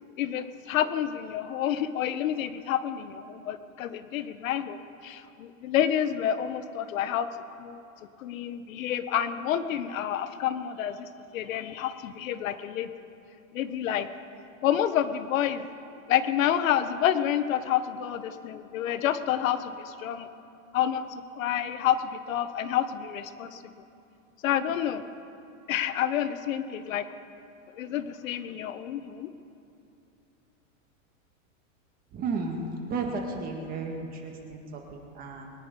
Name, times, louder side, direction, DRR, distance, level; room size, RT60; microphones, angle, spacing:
voice 1, 0.2-7.8 8.2-12.9 13.5-14.1 14.6-15.7 16.1-20.3 20.7-23.6 24.4-25.1 25.7-27.1 27.8-29.3, left 10 dB, 75° left, 11 dB, 1.1 m, -29 dB
voice 2, 32.1-35.5, right 3 dB, 20° right, 2 dB, 1.7 m, -33 dB
23.5 x 9.8 x 5.2 m, 2.7 s
supercardioid pair, 165°, 41 cm